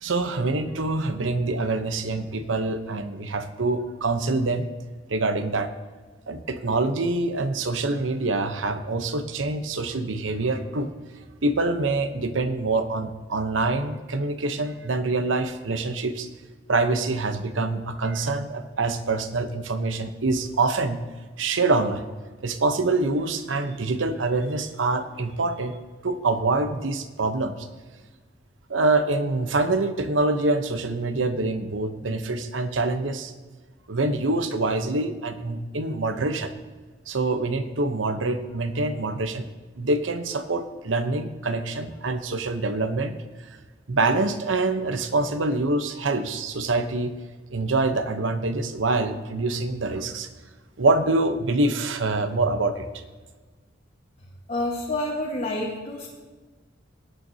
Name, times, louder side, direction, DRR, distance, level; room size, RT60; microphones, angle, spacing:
voice 1, 0.0-4.7 5.1-5.7 6.3-10.9 11.4-16.3 16.7-21.0 21.4-22.1 22.4-25.8 26.0-27.7 28.7-33.3 33.9-36.6 37.1-39.5 39.8-43.2 43.4-43.6 43.9-47.1 47.5-50.3 50.8-53.0, right 3 dB, 85° right, 9 dB, 0.9 m, -25 dB
voice 2, 54.5-56.1, left 1 dB, 40° left, -3 dB, 1.4 m, -28 dB
19.5 x 9.2 x 2.8 m, 1.3 s
head